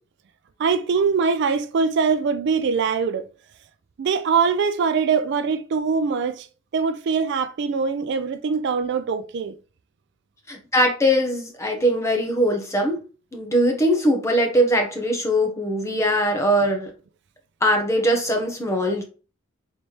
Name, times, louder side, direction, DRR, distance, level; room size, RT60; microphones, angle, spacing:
voice 1, 0.6-3.3 4.0-6.5 6.7-9.5, right 5 dB, 60° right, 0.4 m, -22 dB
voice 2, 10.5-13.0 13.3-16.9 17.6-19.0, equal, 15° left, 1.0 m, -21 dB
4.1 x 3.3 x 3.2 m
head